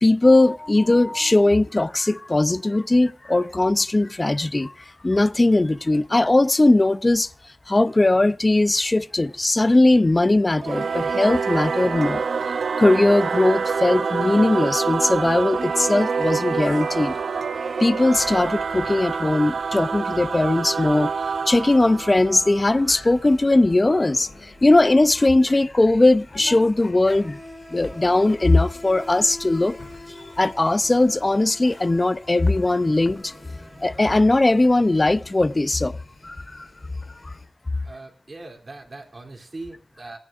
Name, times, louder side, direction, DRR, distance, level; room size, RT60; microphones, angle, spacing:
voice 1, 0.0-4.7 5.0-7.3 7.7-12.2 12.8-17.1 17.8-21.1 21.5-27.4 27.7-29.8 30.1-33.3 33.8-36.0 36.2-36.7 37.2-37.3, left 2 dB, 30° left, 0.5 m, -19 dB
Singing / Musical instrument, 10.6-23.5, right 5 dB, 85° right, 0.6 m, -26 dB
sound 1, 18.1-37.5, left 2 dB, 65° left, 3.0 m, -47 dB
Insect, 24.4-24.6 24.8-35.8, left 1 dB, 10° left, 5.1 m, -44 dB
voice 2, 37.8-40.2, right 2 dB, 45° right, 2.9 m, -40 dB
27.0 x 9.7 x 2.5 m
wide cardioid pair, 70°, 0 cm